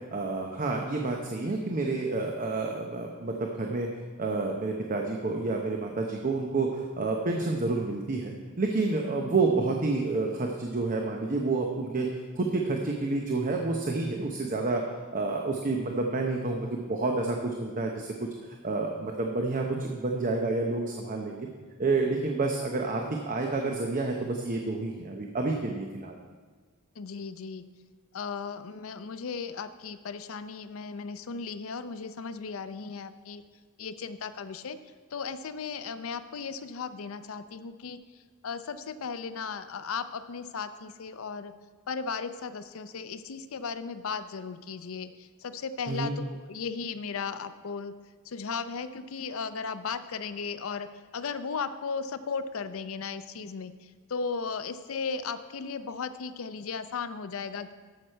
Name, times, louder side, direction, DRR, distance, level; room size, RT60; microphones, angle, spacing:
voice 1, 0.0-3.9 4.2-12.1 12.4-14.8 15.1-18.3 18.6-21.5 21.8-26.2 45.9-46.2, right 3 dB, 40° right, 2 dB, 0.8 m, -29 dB
voice 2, 27.0-27.6 28.1-33.4 33.8-34.8 35.1-38.0 38.4-41.5 41.9-47.9 48.2-57.7, left 5 dB, 70° left, 11 dB, 0.5 m, -36 dB
13.0 x 6.1 x 4.5 m, 1.5 s
head